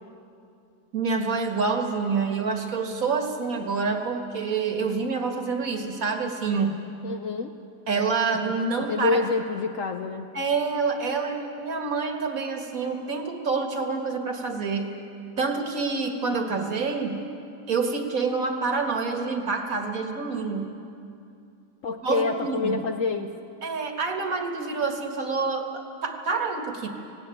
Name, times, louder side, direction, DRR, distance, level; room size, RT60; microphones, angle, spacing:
voice 1, 0.9-6.8 7.9-9.2 10.3-14.9 15.4-17.2 17.7-20.7 22.0-22.8 23.6-26.9, right 4 dB, 55° right, 4 dB, 1.9 m, -27 dB
voice 2, 7.0-7.5 8.8-10.3 21.8-23.3, left 4 dB, 60° left, 6 dB, 0.9 m, -27 dB
18.0 x 17.5 x 9.1 m, 2.6 s
omnidirectional pair, 1.9 m